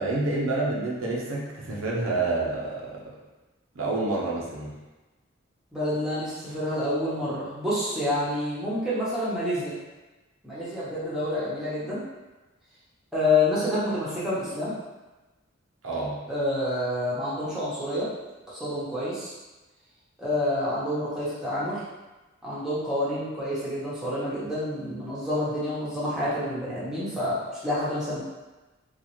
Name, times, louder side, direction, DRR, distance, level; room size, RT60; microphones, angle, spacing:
voice 1, 0.0-3.0 3.7-4.7 15.8-16.2, right 2 dB, 80° right, -4 dB, 0.8 m, -28 dB
voice 2, 5.7-9.7 10.4-12.0 13.1-14.7 16.3-18.1 18.5-19.3 20.2-21.8 22.4-27.4 27.6-28.2, left 1 dB, 5° right, -10 dB, 0.9 m, -28 dB
3.9 x 2.5 x 3.0 m, 1.1 s
head